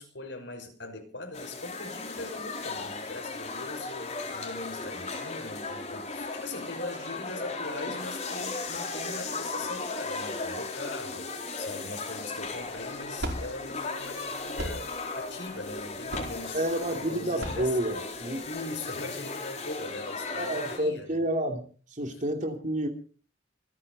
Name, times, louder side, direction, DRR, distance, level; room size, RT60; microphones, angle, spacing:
voice 1, 0.0-16.7 16.9-18.0 18.4-21.2, left 2 dB, 80° left, 6.2 m, -41 dB
sound 1, 1.3-20.8, left 3 dB, 40° left, 4.2 m, -36 dB
sound 2, 12.4-18.6, equal, 90° right, 4.9 m, -39 dB
voice 2, 16.5-18.5 20.4-21.6 21.9-22.9, right 1 dB, 45° right, 2.9 m, -29 dB
26.5 x 10.5 x 4.2 m
head